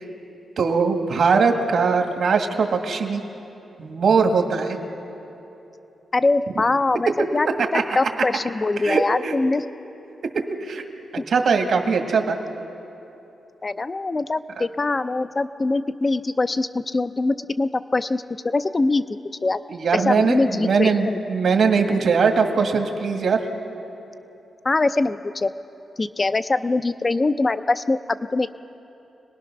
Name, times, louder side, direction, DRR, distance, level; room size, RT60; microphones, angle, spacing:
voice 1, 0.6-3.2 3.8-4.8 7.6-7.8 8.8-9.3 10.6-10.8 11.3-12.4 14.6-14.7 19.7-23.4, right 5 dB, 65° right, 4 dB, 1.9 m, -20 dB
voice 2, 6.1-7.1 7.3-7.5 7.7-9.6 11.2-11.3 13.6-19.0 19.4-19.6 19.9-21.2 24.6-25.5 26.0-28.0 28.3-28.5, left 3 dB, 30° left, 12 dB, 0.6 m, -23 dB
26.0 x 19.5 x 6.0 m, 2.9 s
cardioid pair, 110°, 0 cm